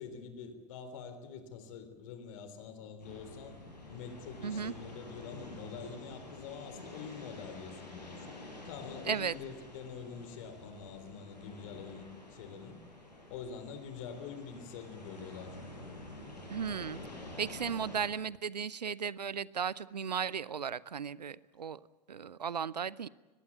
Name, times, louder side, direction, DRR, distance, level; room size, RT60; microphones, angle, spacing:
voice 1, 0.0-3.6 3.9-8.3 8.6-12.8 13.3-15.6, left 6 dB, 55° left, 3.7 m, -45 dB
sound 1, 3.0-18.1, left 1 dB, 80° left, 7.8 m, -49 dB
voice 2, 4.4-4.7 9.1-9.3 16.5-17.0 17.4-21.8 22.1-23.1, right 7 dB, 75° right, 0.7 m, -35 dB
23.0 x 20.0 x 8.4 m
figure-of-eight pair, 85°, 21 cm